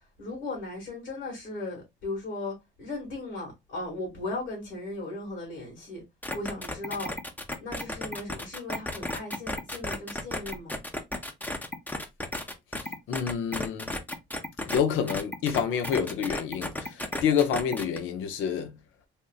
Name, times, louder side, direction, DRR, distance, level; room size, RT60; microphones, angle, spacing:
voice 1, 0.0-6.0 6.3-7.1 7.6-10.8, left 2 dB, 70° left, 2.0 m, -37 dB
sound 1, 6.2-14.8 15.1-18.0, left 1 dB, 10° left, 0.6 m, -33 dB
voice 2, 13.1-13.9 14.6-18.7, left 7 dB, 90° left, 0.6 m, -28 dB
3.5 x 2.6 x 2.4 m
cardioid pair, 90°, 20 cm